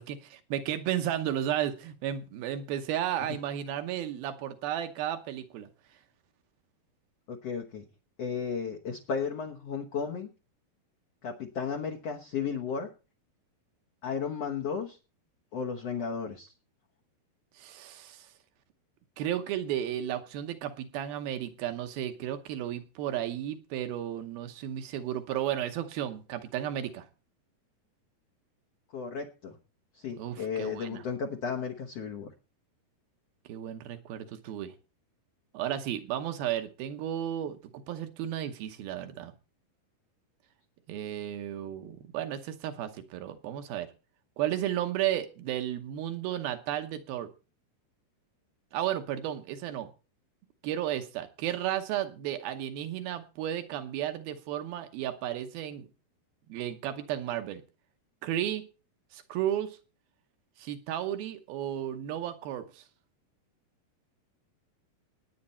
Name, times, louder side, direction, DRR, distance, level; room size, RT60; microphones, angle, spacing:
voice 1, 0.0-5.7 17.6-18.3 19.2-27.1 30.2-31.0 33.5-34.7 35.5-39.3 40.9-43.9 44.4-47.3 48.7-49.9 50.6-55.9 56.5-57.6 58.2-58.6 59.1-59.8 60.6-62.8, right 11 dB, 75° right, 8 dB, 2.6 m, -33 dB
voice 2, 7.3-7.8 8.2-10.3 11.2-12.9 14.0-15.0 15.5-16.5 28.9-29.6 29.9-32.3, left 6 dB, 70° left, 2 dB, 1.5 m, -34 dB
18.5 x 9.5 x 4.3 m, 0.34 s
omnidirectional pair, 4.6 m